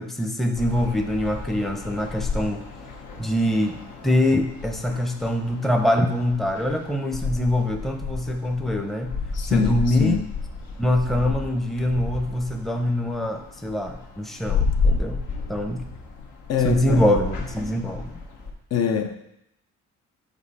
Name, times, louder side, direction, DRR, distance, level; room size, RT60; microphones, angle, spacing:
voice 1, 0.0-2.6 3.2-3.8 4.0-9.1 9.4-10.2 10.8-15.2 15.5-15.8 16.6-18.2, left 1 dB, ahead, 5 dB, 0.6 m, -24 dB
sound 1, 0.6-18.5, left 4 dB, 80° left, 1.1 m, -31 dB
voice 2, 9.3-10.3 16.5-17.0 18.7-19.2, left 8 dB, 55° left, 6 dB, 0.7 m, -24 dB
5.3 x 5.0 x 4.1 m, 0.80 s
cardioid pair, 90°, 30 cm